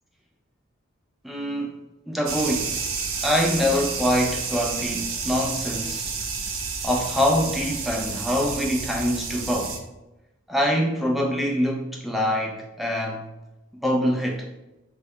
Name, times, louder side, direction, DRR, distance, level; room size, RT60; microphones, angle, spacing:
voice 1, 1.2-1.8 2.1-2.8 3.2-6.1 6.8-9.8 10.5-13.3 13.8-14.5, equal, ahead, 0.3 m, -24 dB
sound 1, 2.3-9.8, right 5 dB, 80° right, 0.5 m, -30 dB
3.2 x 2.2 x 3.5 m
head